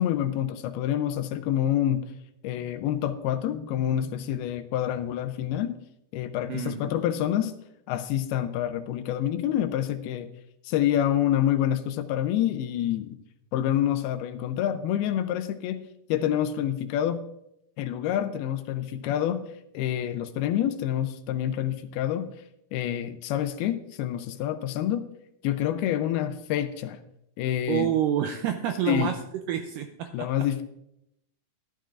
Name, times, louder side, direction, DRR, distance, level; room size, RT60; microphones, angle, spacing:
voice 1, 0.0-2.1 2.4-5.8 6.1-7.6 7.9-10.3 10.6-13.2 13.5-17.2 17.8-19.5 19.7-22.3 22.7-25.1 25.4-27.0 27.4-27.9 28.9-29.1 30.1-30.6, left 11 dB, 85° left, 10 dB, 2.5 m, -27 dB
voice 2, 6.5-6.9 27.7-29.2 29.5-30.3, right 10 dB, 85° right, 6 dB, 2.0 m, -28 dB
14.0 x 11.5 x 2.5 m, 0.80 s
omnidirectional pair, 4.4 m